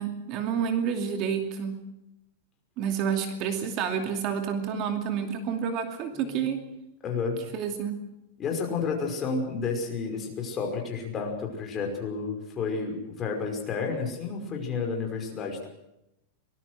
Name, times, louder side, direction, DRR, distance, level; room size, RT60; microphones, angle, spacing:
voice 1, 0.0-1.8 2.8-6.6 7.5-8.0, right 7 dB, 35° right, 6 dB, 2.6 m, -29 dB
voice 2, 6.1-6.4 7.0-7.4 8.4-15.7, left 5 dB, 25° left, 2 dB, 5.4 m, -31 dB
24.5 x 20.0 x 6.3 m, 0.86 s
supercardioid pair, 155°, 0 cm